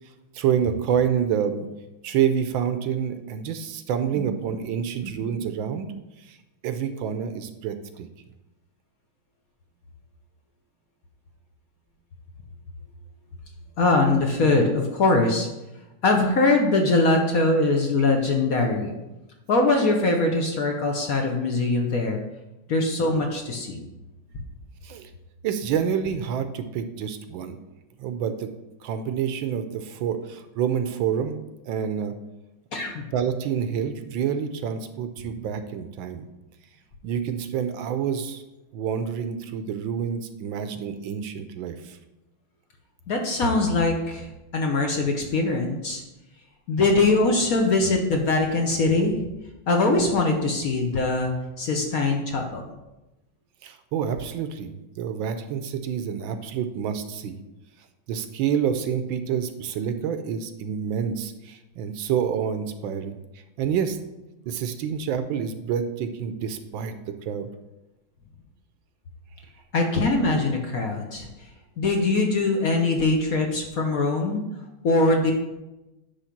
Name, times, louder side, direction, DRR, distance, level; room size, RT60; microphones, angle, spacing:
voice 1, 0.3-1.7 2.0-6.4 6.6-8.1 24.8-25.1 25.4-27.6 28.0-28.5 28.8-32.1 33.1-36.2 37.0-38.4 38.7-42.0 53.6-57.4 58.1-63.1 63.6-64.0 64.5-67.5, right 8 dB, 75° right, 9 dB, 1.3 m, -28 dB
voice 2, 13.8-15.5 16.0-19.0 19.5-22.2 22.7-23.8 32.7-33.1 43.1-44.3 44.5-46.0 46.7-49.2 49.7-52.6 69.7-71.3 71.8-74.4 74.8-75.3, left 2 dB, 55° left, 2 dB, 1.1 m, -22 dB
9.9 x 3.6 x 5.8 m, 0.99 s
omnidirectional pair, 2.2 m